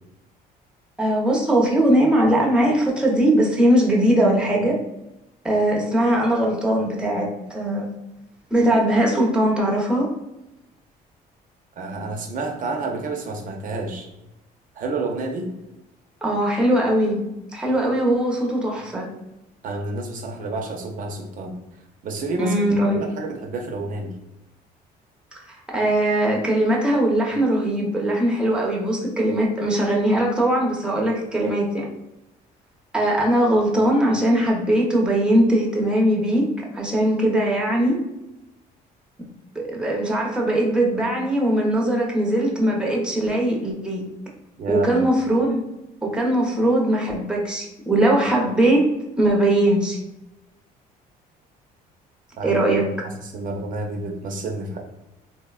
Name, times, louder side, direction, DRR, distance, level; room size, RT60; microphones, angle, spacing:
voice 1, 1.0-4.8 5.4-7.9 8.5-10.1 16.2-17.2 17.5-19.1 22.4-23.0 25.3-31.9 32.9-38.0 39.5-44.0 44.7-45.6 46.0-48.9 49.2-50.0 52.4-52.8, right 1 dB, 5° right, -2 dB, 0.6 m, -20 dB
voice 2, 11.8-14.1 14.8-15.5 19.6-21.5 22.0-22.6 23.0-24.1 44.6-45.0 52.4-54.8, right 2 dB, 50° right, 2 dB, 0.6 m, -29 dB
3.2 x 2.1 x 2.3 m, 0.94 s
cardioid pair, 110°, 17 cm